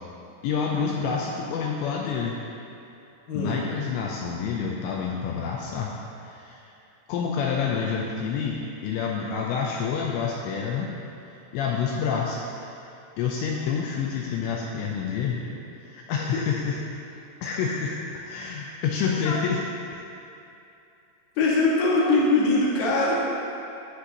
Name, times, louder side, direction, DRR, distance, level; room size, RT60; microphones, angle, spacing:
voice 1, 0.4-2.4 3.3-5.9 6.2-6.6 7.1-10.9 11.5-12.8 13.2-15.4 15.8-16.8 17.4-19.6 19.9-20.0 21.4-21.5, left 6 dB, 90° left, -1 dB, 2.5 m, -28 dB
voice 2, 3.3-3.6 19.2-19.3 21.4-23.2, left 2 dB, 65° left, -5 dB, 1.9 m, -22 dB
15.0 x 6.1 x 2.9 m, 2.8 s
omnidirectional pair, 5.7 m